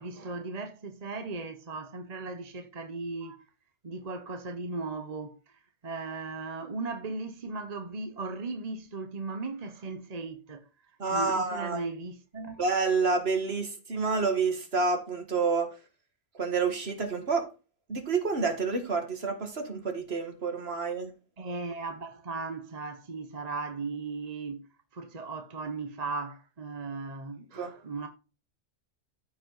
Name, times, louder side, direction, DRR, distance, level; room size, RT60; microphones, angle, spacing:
voice 1, 0.0-3.3 3.8-10.7 11.1-12.6 21.4-24.6 24.9-28.1, right 3 dB, 35° right, 0.9 m, -37 dB
voice 2, 11.0-11.8 12.6-15.7 16.4-17.5 17.9-21.1 27.6-27.7, right 4 dB, 55° right, 2.0 m, -28 dB
14.0 x 5.2 x 3.9 m
omnidirectional pair, 1.3 m